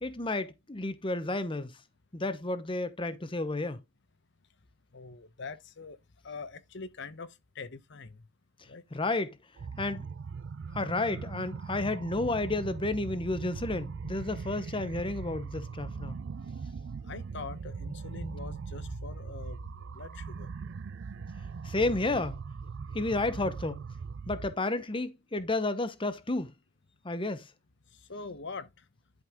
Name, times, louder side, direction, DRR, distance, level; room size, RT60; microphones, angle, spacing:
voice 1, 0.0-1.7 2.1-3.8 8.9-9.4 9.8-10.0 10.7-16.2 21.6-22.4 22.9-23.8 24.3-26.5 27.0-27.4, left 2 dB, 25° left, 0.9 m, -31 dB
voice 2, 4.9-6.0 6.2-8.3 8.6-8.8 17.0-20.5 27.9-28.9, left 4 dB, 60° left, 1.0 m, -43 dB
sound 1, 9.6-24.5, right 5 dB, 60° right, 0.4 m, -40 dB
11.0 x 5.4 x 3.7 m
head